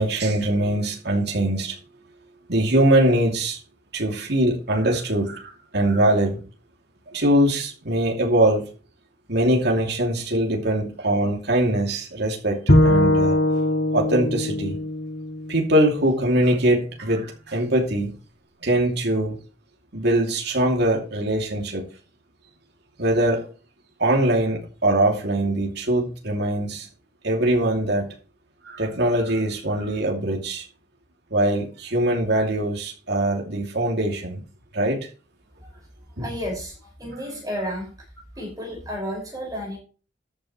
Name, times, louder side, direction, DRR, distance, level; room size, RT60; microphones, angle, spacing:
voice 1, 0.0-1.8 2.5-3.6 3.9-6.4 7.1-8.6 9.3-13.4 13.9-14.8 15.5-18.1 18.6-19.4 19.9-21.8 23.0-23.5 24.0-26.9 27.2-28.1 28.6-30.6 31.3-34.4 34.7-35.1 36.2-36.3, right 1 dB, 60° right, 2.8 m, -22 dB
Bowed string instrument, 12.7-16.0, left 1 dB, 60° left, 1.9 m, -21 dB
voice 2, 36.2-37.9 38.4-39.8, equal, 20° right, 5.8 m, -32 dB
13.5 x 9.2 x 3.2 m
head